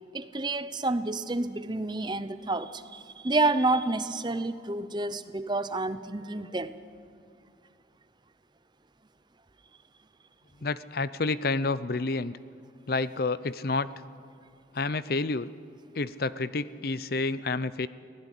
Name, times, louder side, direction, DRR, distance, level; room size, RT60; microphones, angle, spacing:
voice 1, 0.1-6.7, right 2 dB, 25° right, 12 dB, 0.8 m, -29 dB
voice 2, 10.6-12.4 12.9-13.9 14.7-15.5 15.9-17.9, left 3 dB, 50° left, 16 dB, 0.6 m, -29 dB
23.5 x 17.5 x 10.0 m, 2.4 s
head